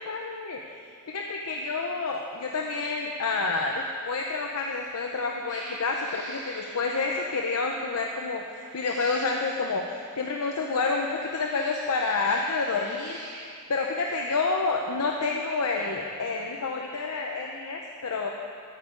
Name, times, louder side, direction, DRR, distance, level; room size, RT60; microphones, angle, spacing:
voice 1, 0.0-13.4 13.7-18.3, left 3 dB, 85° left, 1 dB, 0.7 m, -29 dB
Cat, 4.7-5.0 5.4-7.4 8.5-9.6 11.0-13.6, right 2 dB, 55° right, 2.3 m, -44 dB
14.0 x 9.6 x 3.8 m, 2.3 s
head